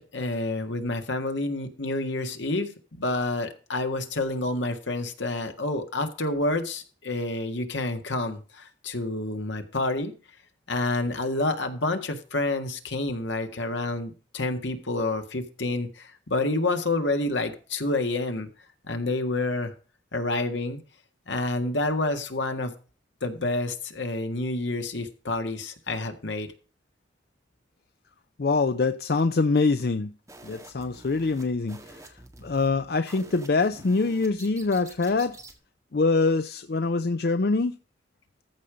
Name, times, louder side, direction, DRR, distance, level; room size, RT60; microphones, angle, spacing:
voice 1, 0.0-10.1 10.7-18.5 18.9-19.7 20.1-20.8 21.3-22.7 23.2-26.5, left 2 dB, 75° left, 1.7 m, -28 dB
voice 2, 28.4-30.1 30.4-32.0 32.4-35.4 35.9-37.8, left 3 dB, 55° left, 0.5 m, -24 dB
sound 1, 30.3-35.6, right 2 dB, 15° right, 1.8 m, -48 dB
14.0 x 5.3 x 5.0 m
head